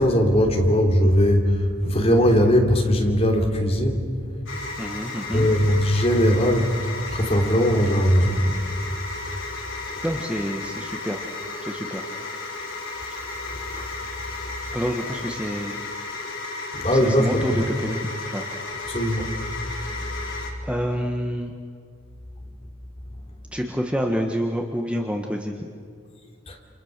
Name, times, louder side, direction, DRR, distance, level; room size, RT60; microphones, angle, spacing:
voice 1, 0.0-4.1 5.3-6.7 7.1-8.4 13.5-13.8 16.8-17.6 18.9-19.3 26.5-26.6, equal, 30° left, 2 dB, 3.3 m, -20 dB
sound 1, 4.5-20.5, left 3 dB, 65° left, 4.9 m, -34 dB
voice 2, 4.8-5.5 10.0-11.2 11.6-12.1 13.0-13.1 14.7-15.8 16.9-18.0 18.3-18.5 20.6-21.5 23.5-25.7, equal, 5° right, 2 dB, 1.4 m, -28 dB
29.5 x 28.0 x 6.7 m, 2.2 s
head